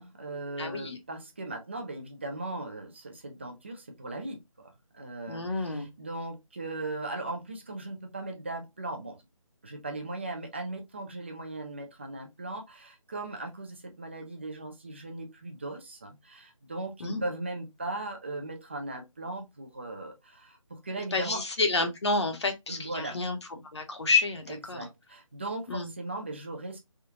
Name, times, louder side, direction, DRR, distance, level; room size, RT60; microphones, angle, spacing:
voice 1, 0.0-9.2 9.6-21.4 22.7-23.2 24.5-26.8, right 2 dB, 20° right, 0.4 m, -38 dB
voice 2, 0.6-1.0 5.3-5.9 17.0-17.2 21.1-23.4 23.7-24.9 25.7-25.9, left 3 dB, 50° left, 0.9 m, -29 dB
3.5 x 2.3 x 2.8 m
figure-of-eight pair, 165°, 18 cm